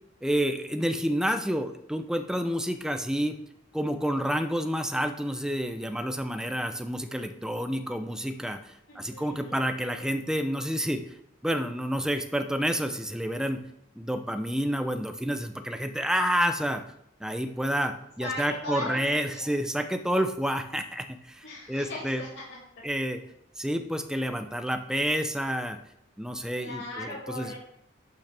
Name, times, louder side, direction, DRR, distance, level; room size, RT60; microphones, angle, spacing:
voice 1, 0.2-3.4 3.7-11.1 11.4-13.6 14.0-16.8 17.2-22.2 22.8-23.2 23.6-25.8 26.2-27.5, equal, 5° right, 7 dB, 0.5 m, -29 dB
voice 2, 8.9-10.1 18.2-19.5 21.4-22.6 26.5-27.6, left 1 dB, 65° left, -7 dB, 2.3 m, -38 dB
11.5 x 6.4 x 3.4 m, 0.77 s
head